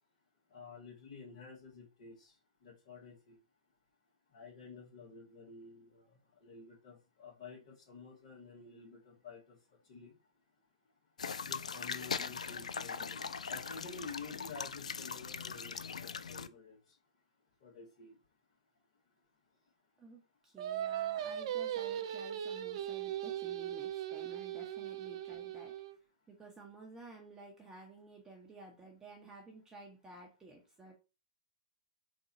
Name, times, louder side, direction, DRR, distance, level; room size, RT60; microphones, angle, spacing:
voice 1, 0.5-3.4 4.3-10.2 11.4-17.0 17.6-18.2, left 4 dB, 50° left, -5 dB, 2.0 m, -51 dB
sound 1, 11.2-16.5, left 6 dB, 80° left, 0.3 m, -40 dB
voice 2, 20.0-25.7 26.3-30.9, right 2 dB, 15° right, -1 dB, 1.1 m, -53 dB
Singing, 20.6-26.0, right 11 dB, 55° right, 0.6 m, -38 dB
3.9 x 2.8 x 4.2 m, 0.31 s
hypercardioid pair, 115°, 4 cm